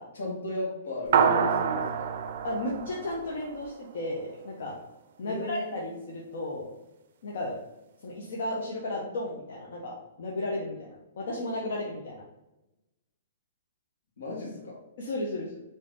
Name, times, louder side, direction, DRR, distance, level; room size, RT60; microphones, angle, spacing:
voice 1, 0.1-2.1 5.2-5.9 14.2-14.8, left 1 dB, 80° left, -1 dB, 1.3 m, -35 dB
sound 1, 1.1-3.8, right 7 dB, 55° right, 0.4 m, -27 dB
voice 2, 2.4-4.8 5.2-6.7 7.2-7.6 8.0-12.2 15.0-15.6, left 1 dB, 65° left, -2 dB, 0.6 m, -34 dB
3.8 x 2.7 x 3.5 m, 0.94 s
hypercardioid pair, 160°, 0 cm